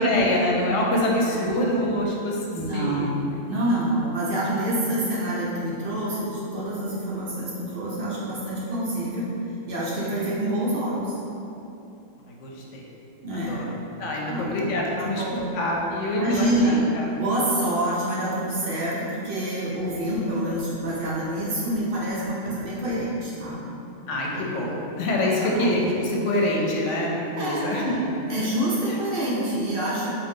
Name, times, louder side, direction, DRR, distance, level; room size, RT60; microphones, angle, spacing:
voice 1, 0.0-2.4 2.7-3.1 12.4-12.8 13.5-13.7 14.0-15.2 15.5-17.1 22.4-22.6 24.1-28.0, left 1 dB, 75° left, -2 dB, 0.9 m, -25 dB
voice 2, 2.5-3.2 3.5-9.3 9.7-11.2 13.2-13.5 14.2-14.5 15.0-15.4 16.1-16.8 17.2-23.6 24.0-24.4 25.4-25.7 27.4-28.0 28.3-30.2, right 1 dB, 55° right, -7 dB, 0.7 m, -27 dB
3.7 x 2.5 x 3.6 m, 2.9 s
omnidirectional pair, 1.3 m